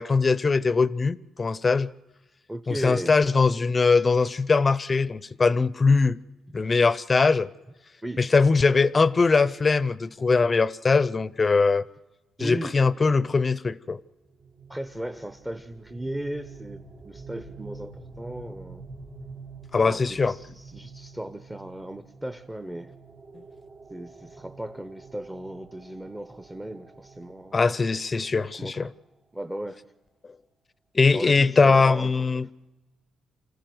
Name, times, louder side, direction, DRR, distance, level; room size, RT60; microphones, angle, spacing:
voice 1, 0.0-1.9 2.7-6.2 6.5-7.5 8.2-11.9 12.4-14.0 19.7-20.3 23.3-23.4 27.5-28.9 30.9-32.5, left 4 dB, 30° left, 0.6 m, -21 dB
voice 2, 2.5-3.1 8.0-8.2 12.4-12.8 14.7-18.8 19.9-22.9 23.9-27.6 28.5-28.9 29.3-29.8 31.1-32.1, right 1 dB, 10° right, 0.8 m, -36 dB
sound 1, 14.2-29.1, right 4 dB, 40° right, 3.9 m, -47 dB
26.5 x 14.5 x 7.8 m
cardioid pair, 90°, 0 cm